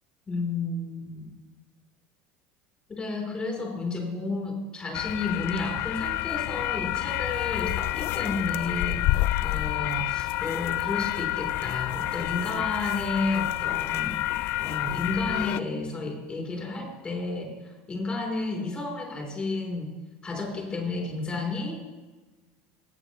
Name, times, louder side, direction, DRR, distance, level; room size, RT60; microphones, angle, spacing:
voice 1, 0.3-1.3 2.9-14.2 14.6-19.9 20.2-21.8, left 3 dB, 20° left, 0 dB, 3.6 m, -32 dB
sound 1, 4.9-15.6, left 16 dB, 55° left, 0.3 m, -29 dB
18.5 x 8.7 x 3.1 m, 1.2 s
supercardioid pair, 125°, 5 cm